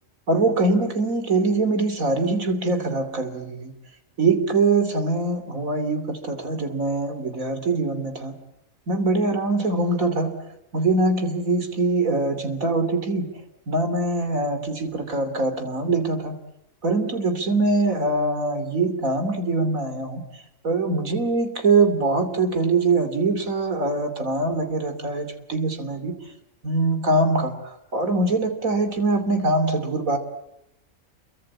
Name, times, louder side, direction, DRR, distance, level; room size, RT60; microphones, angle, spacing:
voice 1, 0.3-3.7 4.2-8.4 8.9-10.4 10.7-13.3 13.7-16.4 16.8-20.2 20.6-26.2 26.6-30.2, right 3 dB, 85° right, 8 dB, 3.4 m, -23 dB
28.5 x 23.5 x 8.7 m, 0.82 s
omnidirectional pair, 1.4 m